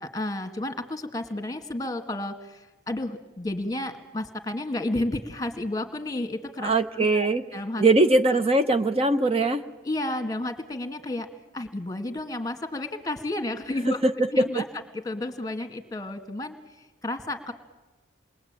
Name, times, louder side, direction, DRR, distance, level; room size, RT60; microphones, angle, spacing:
voice 1, 0.0-7.3 7.5-7.8 9.8-11.3 11.5-14.0 14.3-14.7 14.9-16.6 17.0-17.5, left 1 dB, 20° left, 8 dB, 2.0 m, -31 dB
voice 2, 6.6-7.4 7.8-9.6 14.0-14.1 14.4-14.6, right 2 dB, 30° right, 8 dB, 0.9 m, -21 dB
28.5 x 22.0 x 8.9 m, 1.1 s
head